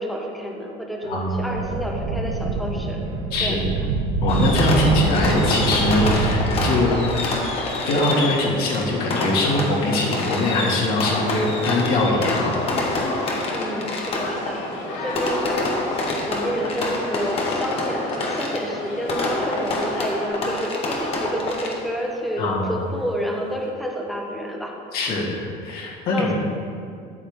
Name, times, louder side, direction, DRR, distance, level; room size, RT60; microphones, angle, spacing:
voice 1, 0.0-3.0 3.4-3.6 4.7-4.8 13.5-14.6 15.0-15.7 16.3-24.7 25.1-25.2 26.1-26.3, equal, ahead, -1 dB, 1.0 m, -29 dB
voice 2, 1.0-1.6 3.3-3.8 4.2-7.0 7.9-13.0 22.4-22.8 24.9-26.3, left 2 dB, 55° left, -3 dB, 2.1 m, -22 dB
sound 1, 1.3-7.4, right 3 dB, 85° right, 1.1 m, -25 dB
Fireworks, 4.3-22.0, left 2 dB, 30° left, 1.2 m, -27 dB
sound 2, 5.3-20.3, left 2 dB, 80° left, 2.6 m, -34 dB
13.0 x 8.4 x 3.6 m, 2.3 s
cardioid pair, 175°, 19 cm